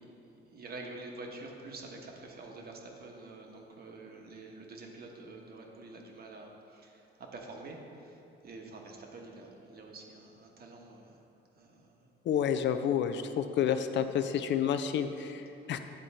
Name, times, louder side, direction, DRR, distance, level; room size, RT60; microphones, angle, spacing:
voice 1, 0.0-11.2 11.6-12.1, right 2 dB, 50° right, 1 dB, 1.1 m, -47 dB
voice 2, 12.3-15.8, left 8 dB, 65° left, 8 dB, 0.4 m, -30 dB
9.1 x 3.8 x 4.2 m, 2.7 s
cardioid pair, 90°, 20 cm